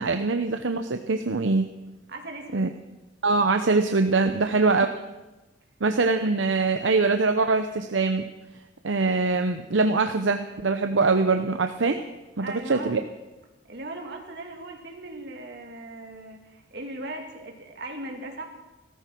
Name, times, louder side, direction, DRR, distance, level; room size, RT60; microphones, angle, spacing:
voice 1, 0.0-1.7 2.5-2.7 3.2-4.9 5.8-8.2 8.8-12.0 12.4-13.0, right 3 dB, 80° right, 7 dB, 0.8 m, -23 dB
voice 2, 2.1-2.7 4.2-4.9 12.4-13.0 13.7-18.4, right 2 dB, 60° right, 2 dB, 2.7 m, -38 dB
16.5 x 14.0 x 6.1 m, 1.1 s
head